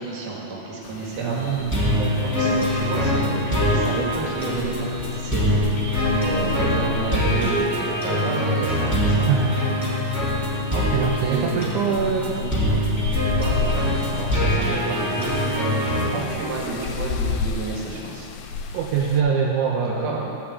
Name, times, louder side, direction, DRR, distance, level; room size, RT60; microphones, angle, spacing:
voice 1, 0.0-2.0 2.2-9.3 11.0-11.7 13.3-18.3 19.8-20.2, right 3 dB, 55° right, -4 dB, 2.9 m, -31 dB
sound 1, 0.8-19.2, left 5 dB, 85° left, 2.4 m, -32 dB
voice 2, 1.2-2.4 9.2-9.5 10.7-12.6 14.7-15.0 18.7-20.3, right 6 dB, 75° right, -1 dB, 2.1 m, -24 dB
sound 2, 1.7-16.1, equal, 5° right, 1.9 m, -23 dB
14.0 x 5.7 x 8.7 m, 2.9 s
omnidirectional pair, 4.0 m